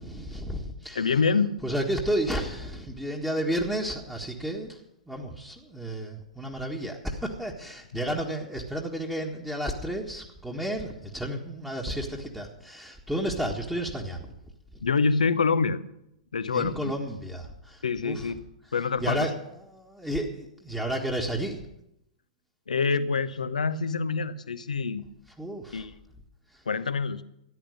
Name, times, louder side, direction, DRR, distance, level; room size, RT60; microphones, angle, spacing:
voice 1, 0.0-1.2 1.6-4.8 5.1-14.3 16.5-18.3 19.0-21.6 25.4-25.8 26.5-26.6, right 1 dB, 5° right, 0 dB, 1.7 m, -32 dB
voice 2, 0.9-1.5 14.8-15.8 16.3-16.9 17.8-18.4 18.7-19.2 22.7-25.0 25.7-25.9 26.7-27.2, left 5 dB, 80° left, 13 dB, 0.8 m, -26 dB
14.0 x 10.5 x 6.6 m, 0.80 s
figure-of-eight pair, 110°, 4 cm